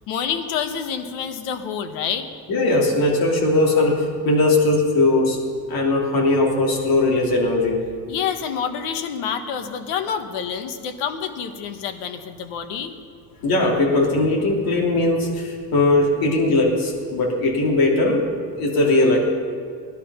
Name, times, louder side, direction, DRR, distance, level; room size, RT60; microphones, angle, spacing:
voice 1, 0.1-2.3 8.1-12.9, left 7 dB, 75° left, 8 dB, 1.5 m, -27 dB
voice 2, 2.5-5.4 5.7-7.8 13.4-18.2 18.6-19.2, left 2 dB, 55° left, -1 dB, 3.2 m, -19 dB
18.0 x 11.5 x 5.6 m, 2.2 s
cardioid pair, 165°, 42 cm